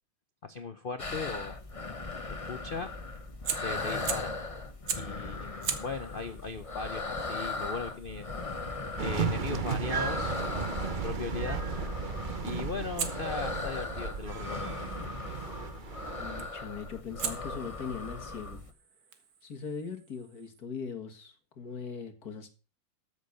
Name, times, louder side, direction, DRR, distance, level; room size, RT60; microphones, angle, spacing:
voice 1, 0.4-1.6 2.3-2.9 3.6-4.4 4.9-8.3 9.0-11.6 12.4-14.8, left 4 dB, 75° left, 9 dB, 0.5 m, -38 dB
sound 1, 1.0-18.7, left 3 dB, 25° left, 0.8 m, -38 dB
Fire, 3.4-4.4 4.9-5.2 5.6-10.5 13.0-15.1 16.4-16.7 17.2-20.6, right 8 dB, 75° right, 2.1 m, -41 dB
sound 2, 9.0-16.5, right 5 dB, 55° right, 0.5 m, -35 dB
voice 2, 16.2-18.6 19.4-22.5, left 6 dB, 50° left, 6 dB, 2.2 m, -40 dB
13.5 x 7.3 x 6.6 m, 0.33 s
omnidirectional pair, 2.2 m